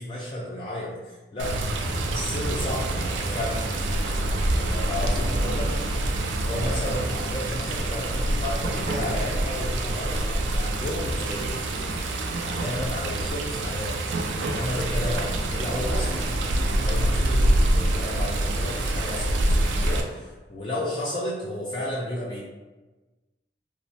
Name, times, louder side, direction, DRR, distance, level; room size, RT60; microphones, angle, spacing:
voice 1, 0.0-1.6 1.9-5.7 6.4-12.0 12.3-14.0 14.5-22.4, left 1 dB, 25° left, -5 dB, 0.3 m, -33 dB
Water, 1.4-20.0, right 1 dB, 80° right, 0.3 m, -26 dB
2.9 x 2.0 x 2.7 m, 1.2 s
head